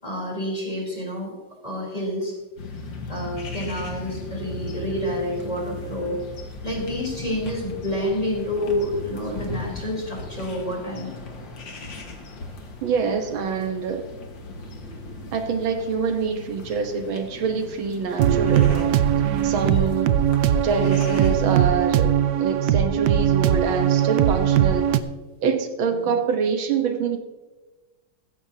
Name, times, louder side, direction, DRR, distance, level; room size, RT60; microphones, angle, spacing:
voice 1, 0.0-1.3 1.6-2.3 3.1-6.2 6.6-11.1 19.6-19.9 25.9-26.1, left 1 dB, 20° left, -3 dB, 3.7 m, -28 dB
sound 1, 2.6-21.7, left 2 dB, 70° left, 2.4 m, -38 dB
voice 2, 12.8-14.1 15.3-19.0 19.4-20.1 20.6-24.8 25.4-27.2, right 5 dB, 85° right, 6 dB, 2.0 m, -25 dB
sound 2, 18.2-25.0, right 10 dB, 70° right, 1.2 m, -20 dB
15.0 x 15.0 x 2.9 m, 1.2 s
omnidirectional pair, 2.1 m